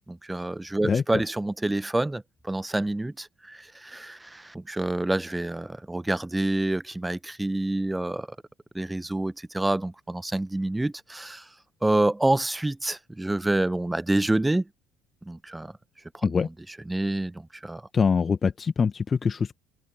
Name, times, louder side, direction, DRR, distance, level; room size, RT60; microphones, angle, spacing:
voice 1, 0.1-8.3 8.7-11.5 11.8-14.6 15.2-15.7 16.1-16.4 16.9-17.8, right 2 dB, 10° right, 1.3 m, -27 dB
voice 2, 17.9-19.5, left 5 dB, 35° left, 1.7 m, -24 dB
hypercardioid pair, 60°, 0 cm